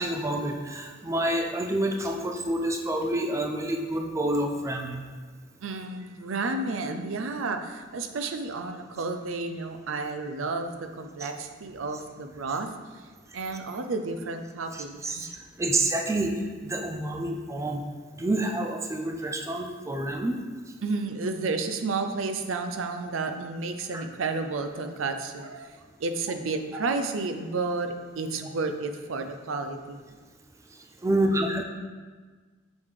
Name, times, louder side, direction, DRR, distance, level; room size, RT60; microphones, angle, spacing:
voice 1, 0.0-5.0 11.2-11.3 14.7-15.3 15.6-16.3 16.6-17.8 18.1-20.4 23.9-24.0 31.0-31.6, right 1 dB, 15° right, 2 dB, 0.5 m, -28 dB
voice 2, 5.6-13.0 13.3-15.3 20.8-25.7 26.0-30.0, right 3 dB, 85° right, 7 dB, 0.5 m, -31 dB
6.2 x 3.7 x 4.9 m, 1.4 s
head